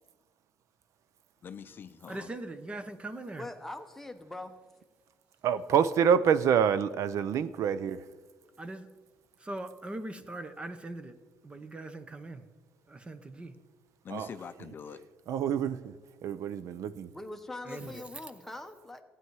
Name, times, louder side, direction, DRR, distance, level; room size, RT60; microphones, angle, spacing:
voice 1, 1.4-2.4 14.0-15.0 17.8-18.0, left 7 dB, 35° left, 10 dB, 0.6 m, -44 dB
voice 2, 2.1-3.4 8.6-8.9 9.4-11.1 11.4-12.4 12.9-13.5 17.7-18.0, right 2 dB, 20° right, 11 dB, 0.8 m, -40 dB
voice 3, 3.4-4.6 17.1-19.0, left 2 dB, 5° left, 5 dB, 1.0 m, -42 dB
voice 4, 5.4-8.0 14.1-14.3 15.3-15.9 16.2-17.1, right 8 dB, 60° right, 14 dB, 0.5 m, -27 dB
15.5 x 9.2 x 4.7 m, 1.3 s
cardioid pair, 135°, 6 cm